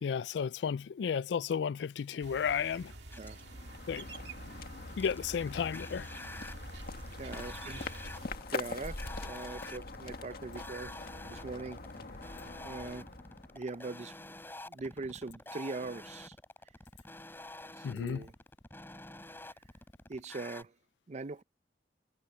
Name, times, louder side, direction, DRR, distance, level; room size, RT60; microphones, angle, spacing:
voice 1, 0.0-2.9 3.9-4.1 5.0-6.1 17.8-18.2, left 7 dB, 75° left, 0.3 m, -33 dB
sound 1, 2.2-8.3, right 2 dB, 75° right, 2.0 m, -48 dB
sound 2, 3.1-13.9, left 3 dB, 60° left, 1.7 m, -44 dB
sound 3, 3.1-3.5 5.0-20.6, left 2 dB, 15° left, 4.7 m, -48 dB
voice 2, 7.2-7.9 8.5-10.9 11.2-11.8 12.2-12.3 12.6-13.1 13.5-14.2 14.7-16.3 17.8-18.3 20.1-20.7 21.1-21.4, right 3 dB, 40° right, 0.5 m, -41 dB
head